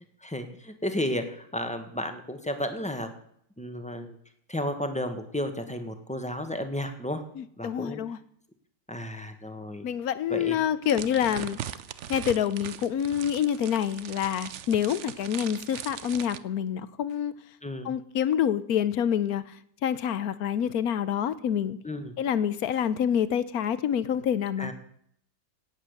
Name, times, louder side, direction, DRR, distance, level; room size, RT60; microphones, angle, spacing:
voice 1, 0.2-3.1 3.6-4.2 4.5-7.2 7.6-8.0 8.9-9.9 10.3-10.6 17.6-17.9 21.8-22.1 24.6-24.7, left 1 dB, 5° left, 7 dB, 1.4 m, -33 dB
voice 2, 7.4-8.2 9.8-11.6 12.1-17.3 17.8-19.5 19.8-21.8 22.2-24.7, left 9 dB, 65° left, 15 dB, 1.1 m, -27 dB
sound 1, 10.8-16.4, right 10 dB, 60° right, 0.7 m, -40 dB
17.0 x 8.9 x 6.7 m, 0.67 s
omnidirectional pair, 2.0 m